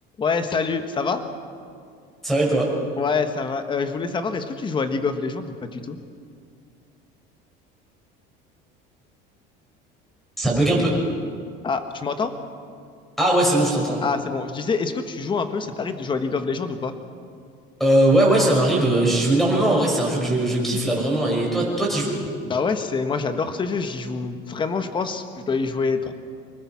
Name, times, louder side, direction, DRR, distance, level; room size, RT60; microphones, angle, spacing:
voice 1, 0.2-1.2 3.0-6.0 11.6-12.3 14.0-16.9 22.4-26.1, left 4 dB, 25° left, 8 dB, 1.4 m, -26 dB
voice 2, 2.2-2.7 10.4-10.9 13.2-14.0 17.8-22.2, right 1 dB, ahead, -2 dB, 5.6 m, -20 dB
25.0 x 20.5 x 5.9 m, 2.3 s
cardioid pair, 150°, 21 cm